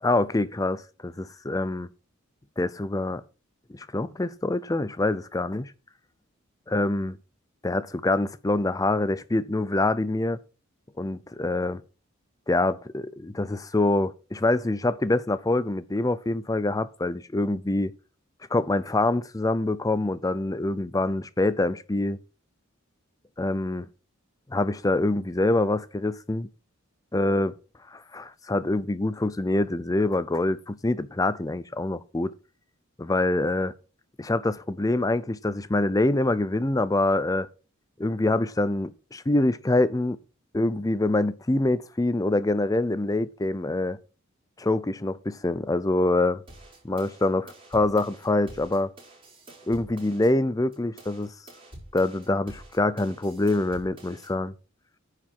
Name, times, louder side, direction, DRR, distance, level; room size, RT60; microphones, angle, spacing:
voice 1, 0.0-1.9 2.6-3.2 3.7-5.7 6.7-7.2 7.6-10.4 11.0-11.8 12.5-17.9 18.5-22.2 23.4-23.9 24.5-26.5 27.1-27.6 27.9-32.3 33.0-33.7 34.2-37.5 38.0-40.2 40.5-44.0 44.6-46.4 46.8-48.9 49.7-51.3 51.9-54.5, left 2 dB, 15° left, 0.5 m, -25 dB
sound 1, 46.5-50.3 50.7-54.3, right 1 dB, 25° right, 5.3 m, -48 dB
10.0 x 4.9 x 7.5 m
head